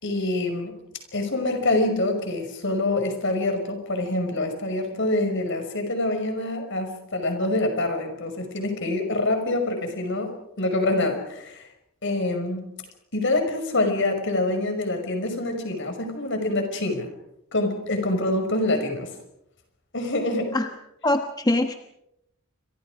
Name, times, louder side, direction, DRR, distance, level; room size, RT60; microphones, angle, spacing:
voice 1, 0.0-0.7 1.1-11.7 12.0-12.6 13.1-17.1 17.5-19.1 19.9-20.6, left 2 dB, 60° left, 6 dB, 5.7 m, -26 dB
voice 2, 21.0-21.7, left 1 dB, 20° left, 6 dB, 1.2 m, -23 dB
29.0 x 25.0 x 5.0 m, 0.80 s
head